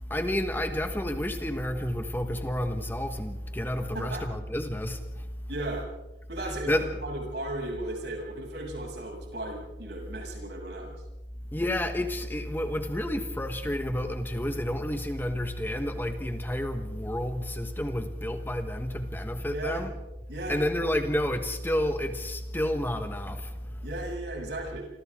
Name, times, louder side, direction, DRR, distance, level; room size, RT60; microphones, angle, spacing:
voice 1, 0.0-5.3 6.7-6.9 11.5-19.9 20.5-23.8, left 1 dB, 10° left, 1.4 m, -30 dB
voice 2, 5.5-5.9 6.3-10.9 19.5-19.8 20.3-20.6 23.8-24.8, right 1 dB, 70° right, 7.3 m, -36 dB
28.0 x 26.0 x 3.7 m
head